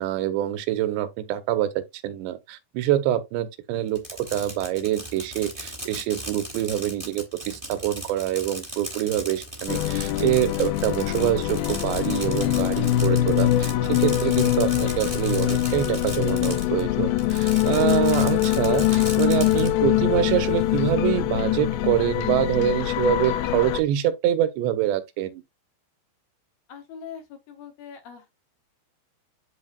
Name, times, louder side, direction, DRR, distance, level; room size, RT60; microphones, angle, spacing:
voice 1, 0.0-25.4, right 12 dB, 80° right, 2.8 m, -25 dB
Fireworks, 3.9-16.8 17.2-19.7, right 1 dB, 15° right, 1.2 m, -37 dB
sound 1, 9.7-23.8, left 13 dB, 85° left, 2.2 m, -23 dB
voice 2, 26.7-28.3, left 7 dB, 65° left, 2.6 m, -42 dB
12.5 x 4.2 x 2.3 m
omnidirectional pair, 5.0 m